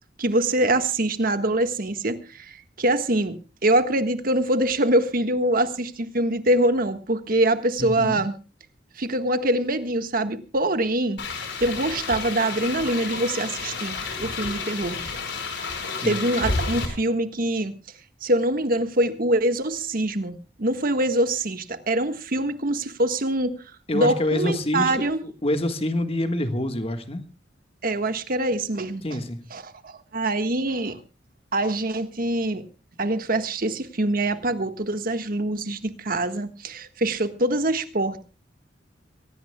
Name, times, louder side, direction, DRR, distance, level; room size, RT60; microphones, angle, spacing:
voice 1, 0.2-8.3 9.0-11.2 11.6-15.0 16.0-17.7 18.2-23.5 23.9-25.2 27.8-29.2 29.5-31.0 31.5-32.6 33.0-38.3, right 1 dB, 50° right, 9 dB, 1.5 m, -24 dB
voice 2, 7.8-8.2 15.9-16.2 23.9-24.9 25.2-27.2 29.0-29.4, left 1 dB, 35° left, 8 dB, 1.5 m, -26 dB
sound 1, 11.2-16.9, left 3 dB, 75° left, 4.9 m, -30 dB
24.0 x 17.5 x 2.3 m, 0.33 s
head